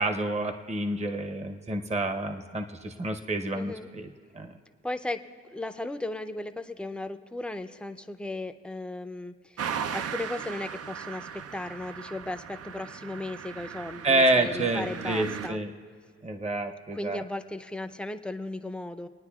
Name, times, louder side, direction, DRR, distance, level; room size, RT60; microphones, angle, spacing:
voice 1, 0.0-4.5 14.0-15.7 16.2-17.2, right 2 dB, 20° right, 6 dB, 0.8 m, -28 dB
voice 2, 3.5-3.9 4.8-15.6 16.9-19.1, left 2 dB, 5° left, 9 dB, 0.6 m, -36 dB
sound 1, 9.6-15.5, right 7 dB, 55° right, 0.5 m, -37 dB
28.0 x 9.6 x 2.4 m, 2.2 s
supercardioid pair, 55°, 29 cm